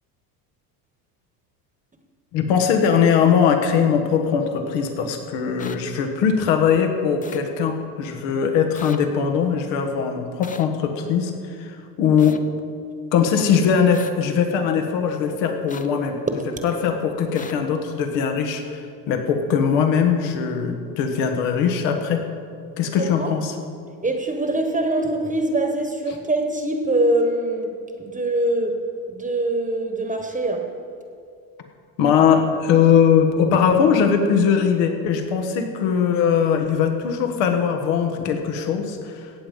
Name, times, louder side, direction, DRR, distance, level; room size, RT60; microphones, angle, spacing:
voice 1, 2.3-12.4 13.1-16.2 16.6-22.2 22.8-23.5 32.0-39.5, left 7 dB, 75° left, 5 dB, 1.6 m, -20 dB
sound 1, 5.6-5.8 7.2-7.4 8.8-9.0 10.4-10.6 12.2-12.4 13.9-14.1 15.7-15.9 17.4-17.5, left 5 dB, 20° left, 0.7 m, -39 dB
voice 2, 23.0-23.4 24.0-28.8 29.1-30.8, right 1 dB, 15° right, 5 dB, 1.3 m, -23 dB
17.0 x 7.6 x 5.4 m, 2.3 s
supercardioid pair, 95°, 45 cm